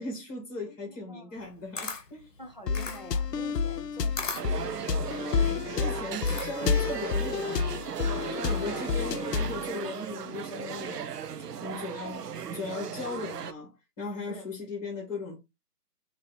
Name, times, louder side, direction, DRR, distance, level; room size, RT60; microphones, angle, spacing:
voice 1, 0.0-2.3 5.7-8.0 8.3-11.1 11.6-15.4, left 3 dB, 15° left, 1.7 m, -38 dB
voice 2, 0.9-1.4 2.4-4.9 8.5-8.9 14.2-14.4, equal, 30° right, 0.5 m, -46 dB
Camera, 1.4-6.8, left 5 dB, 50° left, 1.0 m, -39 dB
sound 1, 2.7-9.6, left 5 dB, 85° left, 0.6 m, -29 dB
sound 2, 4.3-13.5, right 7 dB, 75° right, 0.6 m, -36 dB
4.3 x 2.9 x 3.1 m
figure-of-eight pair, 150°, 48 cm